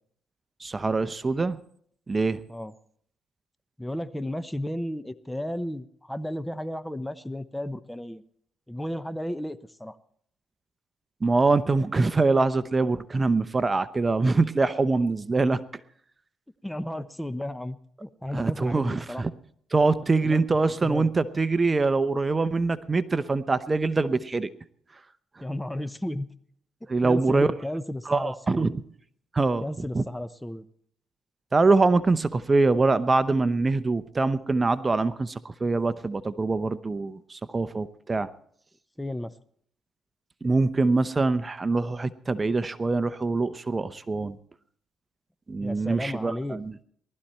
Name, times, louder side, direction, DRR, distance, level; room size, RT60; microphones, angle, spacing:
voice 1, 0.6-1.6 2.1-2.4 11.2-15.8 18.3-19.3 19.7-24.5 26.9-27.5 28.1-28.8 29.3-29.6 29.9-30.0 31.5-38.3 40.4-44.4 45.5-46.7, right 3 dB, 25° right, 13 dB, 0.8 m, -24 dB
voice 2, 3.8-8.2 8.7-10.0 16.6-19.2 20.2-21.1 25.4-26.3 27.0-28.7 29.6-30.6 39.0-39.3 45.6-46.6, left 1 dB, 5° left, 13 dB, 0.8 m, -33 dB
19.0 x 13.0 x 4.4 m, 0.64 s
cardioid pair, 90°, 0 cm